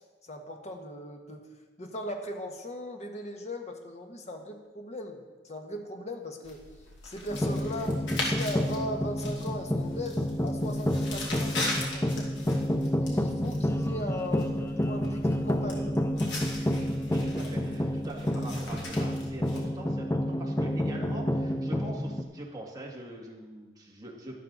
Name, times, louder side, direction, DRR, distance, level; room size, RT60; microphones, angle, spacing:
voice 1, 0.0-1.5 1.8-6.6 7.0-12.3 13.0-14.5 14.8-15.9, left 1 dB, 35° left, 3 dB, 1.4 m, -38 dB
sound 1, 6.4-19.6, left 2 dB, 70° left, 2.7 m, -40 dB
sound 2, 7.3-22.2, equal, 15° left, 0.5 m, -29 dB
voice 2, 17.1-24.4, right 1 dB, 20° right, -2 dB, 2.1 m, -43 dB
12.0 x 12.0 x 4.0 m, 1.3 s
head